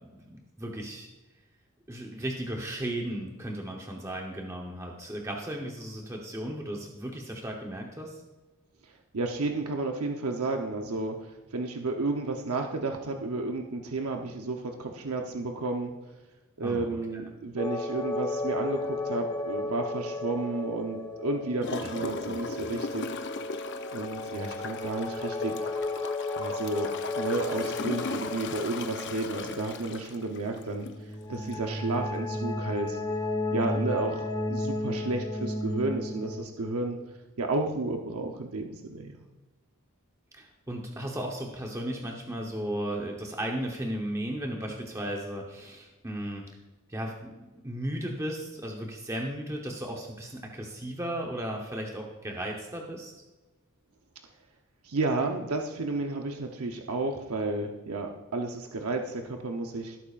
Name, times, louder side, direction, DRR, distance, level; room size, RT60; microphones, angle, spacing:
voice 1, 0.2-1.1 1.9-8.2 16.6-16.9 21.8-21.9 22.2-22.7 33.6-34.0 40.3-46.4 46.9-53.1, right 1 dB, 15° right, 0 dB, 1.0 m, -35 dB
voice 2, 9.1-15.9 16.6-23.1 23.9-25.7 26.4-30.9 31.3-33.0 33.5-37.0 37.4-39.1 54.8-60.0, right 2 dB, 80° right, 3 dB, 0.9 m, -32 dB
sound 1, 17.6-29.6, left 2 dB, 80° left, 3.3 m, -42 dB
sound 2, 17.6-21.8 22.0-22.1 23.8-29.5 30.6-36.4, left 2 dB, 20° left, 1.1 m, -34 dB
Gurgling / Toilet flush, 21.6-31.0 31.5-31.6, left 4 dB, 55° left, 0.6 m, -38 dB
17.0 x 8.7 x 2.5 m, 1.1 s
head